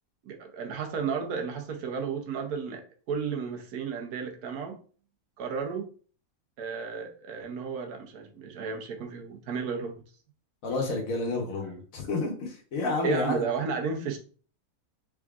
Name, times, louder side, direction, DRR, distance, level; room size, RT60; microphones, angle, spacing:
voice 1, 0.3-4.8 5.4-5.9 6.6-10.0 13.0-14.2, right 5 dB, 85° right, 3 dB, 1.3 m, -33 dB
voice 2, 10.6-13.4, left 3 dB, 65° left, 1 dB, 1.4 m, -30 dB
3.6 x 3.6 x 2.4 m, 0.41 s
omnidirectional pair, 1.5 m